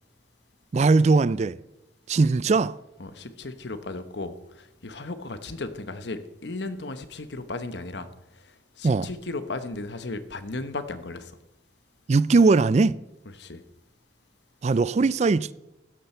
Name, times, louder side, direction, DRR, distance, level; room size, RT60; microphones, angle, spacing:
voice 1, 0.7-1.6 2.1-2.8 8.8-9.1 12.1-13.0 14.6-15.5, right 3 dB, 40° right, 0.3 m, -20 dB
voice 2, 3.0-11.4 13.4-13.6, left 2 dB, 75° left, 1.1 m, -36 dB
15.0 x 12.5 x 4.5 m
head